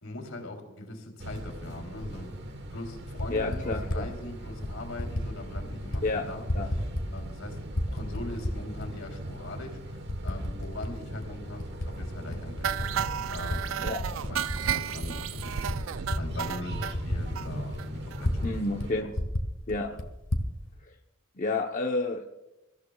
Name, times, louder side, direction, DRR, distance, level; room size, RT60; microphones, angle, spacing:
voice 1, 0.0-2.4 2.7-6.5 7.1-9.8 10.2-12.9 13.3-14.0 14.3-15.7 16.2-19.1 19.9-20.0, left 1 dB, 85° left, 2 dB, 3.2 m, -41 dB
sound 1, 1.2-18.9, right 1 dB, 55° right, 1.2 m, -40 dB
Typing, 2.0-2.1 3.0-4.0 4.6-5.3 5.5-6.0 6.3-7.4 7.7-8.9 9.4-9.5 10.1-10.9 11.2-13.6 13.9-18.5 18.8-18.9 19.1-20.5, left 1 dB, 65° left, 1.6 m, -32 dB
voice 2, 3.3-4.0 6.0-6.3 6.5-6.7 13.8-14.0 18.4-19.1 19.7-20.0 20.8-20.9 21.4-22.3, left 2 dB, 40° left, 2 dB, 0.8 m, -30 dB
sound 2, 12.6-16.9 17.3-17.5 17.8-17.9 18.1-18.2 18.5-18.6, right 9 dB, 70° right, 0.4 m, -32 dB
28.0 x 14.5 x 2.3 m, 0.93 s
head